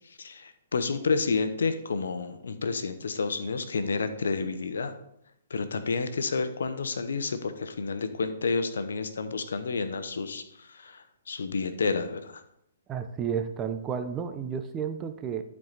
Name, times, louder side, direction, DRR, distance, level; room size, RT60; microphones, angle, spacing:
voice 1, 0.1-5.0 5.5-12.4, left 4 dB, 80° left, 10 dB, 0.9 m, -30 dB
voice 2, 12.9-15.4, right 7 dB, 20° right, 8 dB, 0.7 m, -32 dB
11.5 x 4.8 x 4.1 m, 0.77 s
hypercardioid pair, 135°, 0 cm